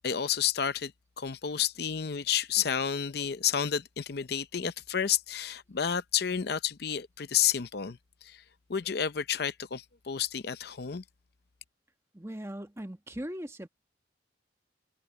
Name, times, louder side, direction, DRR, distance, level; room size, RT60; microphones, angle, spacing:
voice 1, 0.0-8.4 8.7-11.0, left 8 dB, 55° left, 0.6 m, -30 dB
voice 2, 12.1-13.7, equal, 15° right, 1.4 m, -39 dB
head